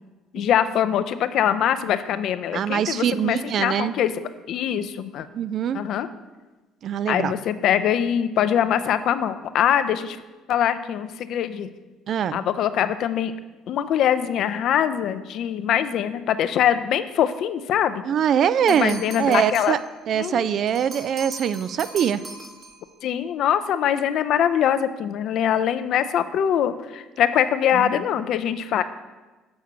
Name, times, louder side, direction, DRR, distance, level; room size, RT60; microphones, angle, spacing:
voice 1, 0.3-4.1 4.5-5.3 5.7-6.1 7.1-10.2 10.5-11.7 12.3-13.3 13.7-18.0 18.7-19.7 20.1-20.5 23.0-28.8, left 9 dB, 65° left, 11 dB, 0.4 m, -23 dB
voice 2, 2.5-4.0 5.3-5.8 6.8-7.3 12.1-12.4 18.1-19.8 20.1-22.2 27.7-27.9, right 9 dB, 55° right, 15 dB, 0.3 m, -23 dB
sound 1, 18.7-19.9 20.7-22.9, right 2 dB, 40° right, 1.6 m, -40 dB
7.3 x 4.4 x 6.1 m, 1.2 s
supercardioid pair, 80°, 0 cm